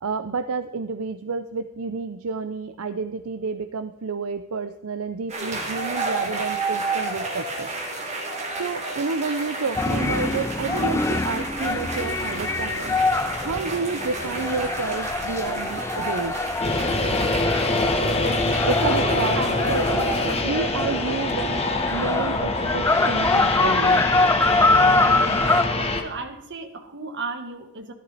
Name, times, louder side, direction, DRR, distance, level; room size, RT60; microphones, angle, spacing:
voice 1, 0.0-7.7 8.6-13.0 13.4-16.4 18.6-24.1, right 4 dB, 75° right, 11 dB, 0.6 m, -30 dB
sound 1, 5.3-20.4, right 3 dB, 30° right, 3.2 m, -32 dB
sound 2, 9.7-25.6, left 3 dB, 10° left, 0.3 m, -24 dB
sound 3, 16.6-26.0, left 2 dB, 30° left, 1.4 m, -24 dB
voice 2, 19.0-19.6 25.0-25.3 26.0-27.9, right 3 dB, 55° right, 6 dB, 1.6 m, -34 dB
14.0 x 12.5 x 4.1 m, 0.90 s
head